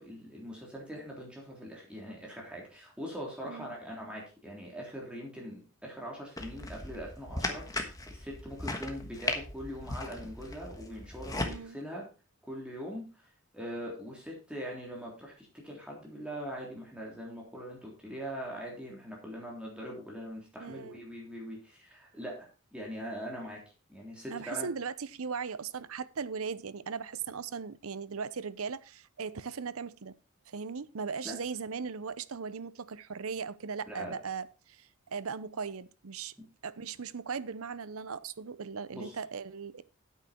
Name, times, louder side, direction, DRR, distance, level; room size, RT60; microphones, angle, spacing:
voice 1, 0.0-12.1 12.4-13.0 13.5-23.6 23.9-24.7 31.2-31.3 33.8-34.2 38.9-39.2, equal, 5° right, 3.4 m, -42 dB
sound 1, 6.4-11.6, left 2 dB, 15° left, 1.3 m, -37 dB
voice 2, 11.4-11.8 20.6-21.1 24.3-30.1 30.5-36.3 36.6-39.8, right 5 dB, 75° right, 0.7 m, -38 dB
9.3 x 8.8 x 4.4 m
head